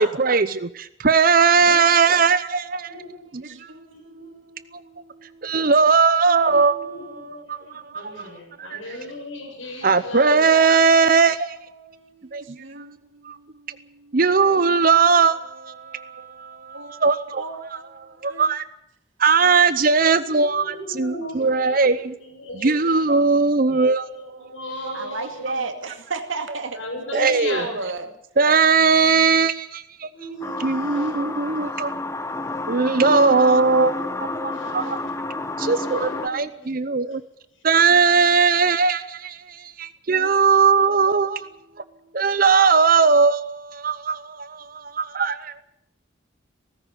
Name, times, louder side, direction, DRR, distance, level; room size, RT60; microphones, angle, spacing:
voice 1, 0.0-2.9 3.6-3.7 5.4-6.8 7.5-7.6 7.9-8.0 8.6-8.8 9.8-11.6 12.3-12.6 13.2-13.4 14.1-17.4 18.2-18.6 19.2-20.6 21.0-22.1 22.6-24.5 27.1-27.6 28.4-30.1 30.6-31.9 32.7-35.0 35.6-37.2 37.6-41.5 42.1-45.6, right 5 dB, 45° right, 14 dB, 0.7 m, -19 dB
voice 2, 2.4-6.0 6.9-7.3 7.9-8.8 11.6-14.2 15.5-17.0 17.4-18.5 24.3-24.6 24.9-26.8 27.1-28.1 34.4-35.0 40.2-40.3 41.7-42.2, right 3 dB, 80° right, 6 dB, 2.4 m, -37 dB
voice 3, 3.9-4.3 6.2-10.5 19.4-19.7 20.1-23.3 23.6-25.8 26.7-27.8 30.1-31.2 33.2-33.4 34.4-35.1 35.6-37.2 37.5-38.1, left 1 dB, 80° left, 3 dB, 7.1 m, -37 dB
sound 1, 30.4-36.3, left 2 dB, 15° left, 1.0 m, -29 dB
18.0 x 15.5 x 9.8 m, 0.75 s
head